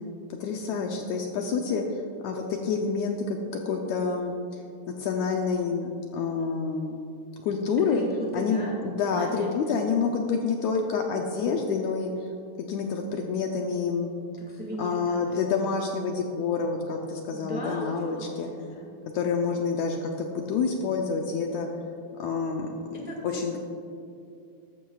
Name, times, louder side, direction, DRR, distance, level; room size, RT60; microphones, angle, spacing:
voice 1, 0.4-4.6 4.9-7.0 7.4-8.0 8.3-12.3 12.7-14.1 14.8-18.5 19.1-21.7 22.2-22.8 23.2-23.6, left 5 dB, 75° left, 2 dB, 1.8 m, -28 dB
voice 2, 7.9-9.6 14.4-15.5 17.3-18.4 18.7-18.9 22.9-23.4, right 1 dB, 5° right, -2 dB, 0.9 m, -37 dB
13.5 x 12.0 x 2.4 m, 2.5 s
omnidirectional pair, 3.8 m